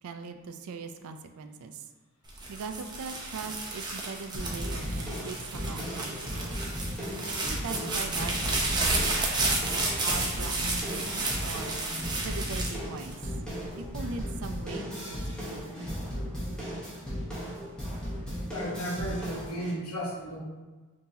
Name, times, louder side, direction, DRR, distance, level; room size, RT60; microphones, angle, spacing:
voice 1, 0.0-1.9 2.5-6.6 7.2-9.6 10.0-11.8 12.2-13.3 13.8-15.8, right 5 dB, 75° right, 8 dB, 0.4 m, -41 dB
sound 1, 2.3-13.6 14.2-14.7, right 2 dB, 20° right, 0.6 m, -32 dB
sound 2, 4.3-19.7, equal, 5° left, 1.0 m, -36 dB
voice 2, 18.5-20.4, equal, 80° left, -3 dB, 1.1 m, -34 dB
5.4 x 2.8 x 2.7 m, 1.3 s
head